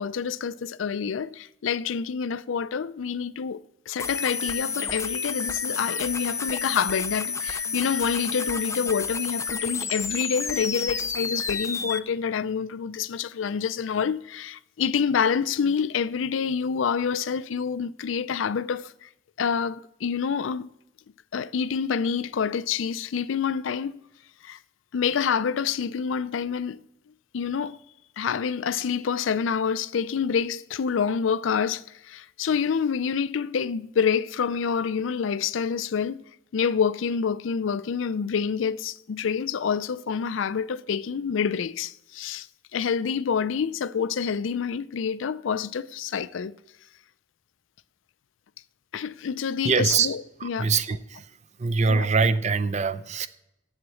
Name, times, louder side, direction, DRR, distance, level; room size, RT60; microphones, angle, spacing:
voice 1, 0.0-19.1 19.4-20.6 21.3-24.0 24.4-24.6 24.9-26.8 27.3-27.8 28.2-36.2 36.5-42.5 42.7-46.5 48.9-50.7 51.9-52.1, left 6 dB, 85° left, 0.4 m, -27 dB
sound 1, 4.0-12.0, left 5 dB, 15° left, 0.4 m, -30 dB
voice 2, 49.6-50.1 50.4-51.2 51.6-53.3, right 5 dB, 40° right, 0.5 m, -23 dB
7.8 x 7.3 x 8.3 m
head